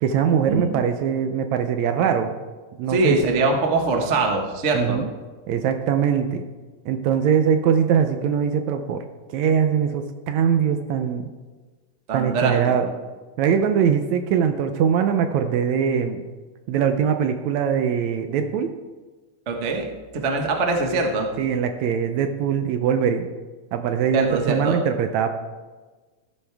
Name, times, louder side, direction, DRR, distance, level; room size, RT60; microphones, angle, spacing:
voice 1, 0.0-2.3 2.8-3.2 4.7-5.1 5.5-6.4 6.9-11.3 12.1-12.9 13.4-16.2 16.7-18.7 21.4-23.3 23.7-25.3, right 7 dB, 75° right, 7 dB, 1.8 m, -22 dB
voice 2, 2.9-5.0 12.1-12.5 19.5-19.8 20.1-21.3 24.1-24.8, right 3 dB, 45° right, 2 dB, 0.9 m, -22 dB
14.5 x 11.5 x 3.5 m, 1.3 s
omnidirectional pair, 3.6 m